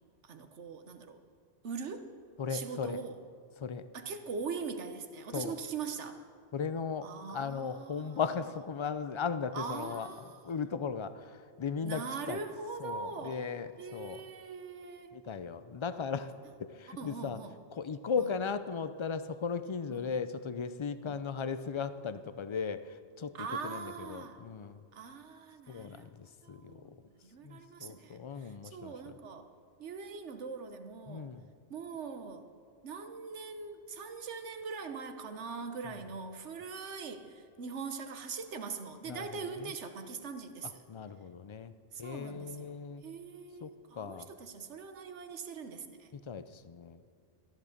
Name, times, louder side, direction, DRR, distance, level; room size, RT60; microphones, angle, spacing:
voice 1, 0.2-1.2 1.6-2.1 2.5-3.2 3.9-6.3 7.0-8.2 9.5-10.4 11.8-13.5 13.8-15.2 17.0-17.6 18.2-18.3 19.9-20.1 21.1-21.2 23.3-24.4 24.9-26.1 26.4-26.9 27.2-29.5 29.8-31.3 31.7-32.5 32.8-40.8 41.9-42.7 43.0-46.1, right 5 dB, 80° right, 8 dB, 1.3 m, -42 dB
voice 2, 2.4-3.0 3.6-3.9 5.3-5.6 6.5-10.1 10.4-12.4 12.8-14.2 15.1-16.3 16.6-17.4 17.7-24.8 25.7-27.0 27.4-29.2 31.1-31.5 35.8-36.0 39.1-39.7 40.6-41.7 42.0-43.0 43.6-44.3 46.1-47.1, left 6 dB, 50° left, 12 dB, 0.3 m, -37 dB
13.5 x 11.0 x 6.6 m, 2.2 s
omnidirectional pair, 1.2 m